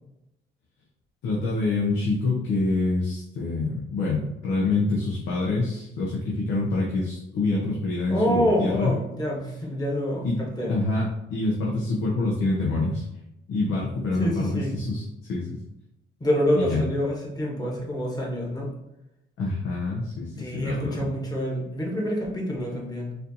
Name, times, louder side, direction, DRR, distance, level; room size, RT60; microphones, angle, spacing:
voice 1, 1.2-8.9 10.2-10.4 10.7-13.1 13.5-15.0 15.3-15.6 16.5-16.8 19.4-21.1, left 3 dB, 80° left, -3 dB, 0.7 m, -26 dB
voice 2, 8.1-10.7 14.2-14.8 16.2-18.7 20.4-23.2, equal, 20° left, -2 dB, 1.2 m, -27 dB
4.2 x 2.6 x 2.7 m, 0.86 s
cardioid pair, 90°, 20 cm